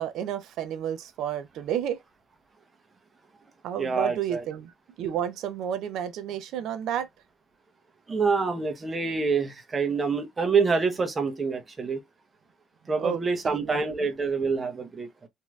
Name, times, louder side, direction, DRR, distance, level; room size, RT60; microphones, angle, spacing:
voice 1, 0.0-2.0 3.6-4.7 5.0-7.1 13.0-13.2 13.4-14.1, right 9 dB, 75° right, 0.5 m, -31 dB
voice 2, 3.8-4.4 8.1-12.0 12.9-15.3, right 4 dB, 30° right, 0.9 m, -26 dB
3.0 x 2.7 x 2.3 m
cardioid pair, 95°, 0 cm